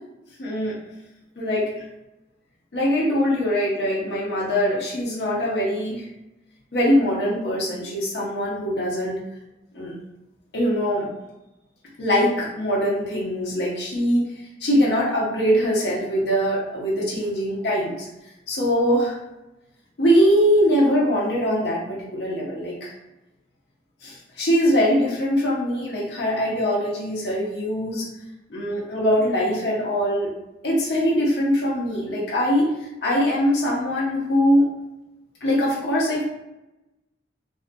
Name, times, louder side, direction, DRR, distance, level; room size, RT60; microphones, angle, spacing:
voice 1, 0.4-0.8 1.4-1.8 2.7-6.1 6.7-9.2 9.7-9.9 10.5-11.1 12.0-14.3 14.6-18.1 18.5-19.2 20.0-22.9 24.0-28.1 28.5-30.3 30.6-32.7 33.0-34.6 35.4-36.2, equal, 70° left, -4 dB, 0.6 m, -22 dB
2.5 x 2.5 x 2.2 m, 0.95 s
head